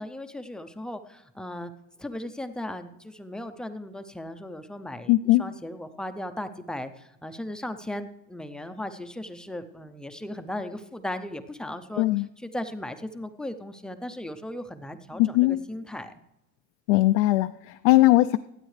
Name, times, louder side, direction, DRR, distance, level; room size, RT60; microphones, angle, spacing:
voice 1, 0.0-1.7 2.0-5.1 5.4-16.1, left 1 dB, ahead, 9 dB, 0.5 m, -37 dB
voice 2, 5.1-5.4 12.0-12.3 15.2-15.6 16.9-18.4, left 18 dB, 70° left, 9 dB, 0.5 m, -20 dB
26.0 x 8.9 x 3.2 m, 0.89 s
cardioid pair, 150°, 36 cm